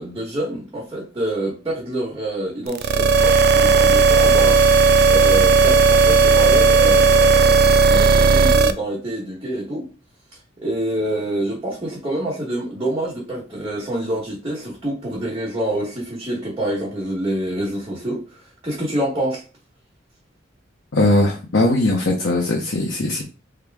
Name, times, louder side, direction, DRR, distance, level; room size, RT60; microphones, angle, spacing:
voice 1, 0.0-4.7 5.1-9.9 10.6-18.2 18.6-19.4, right 1 dB, 20° right, 1.3 m, -26 dB
sound 1, 2.7-8.7, right 4 dB, 55° right, 0.3 m, -14 dB
voice 2, 20.9-23.2, left 2 dB, 80° left, 0.9 m, -19 dB
3.6 x 2.9 x 3.5 m
head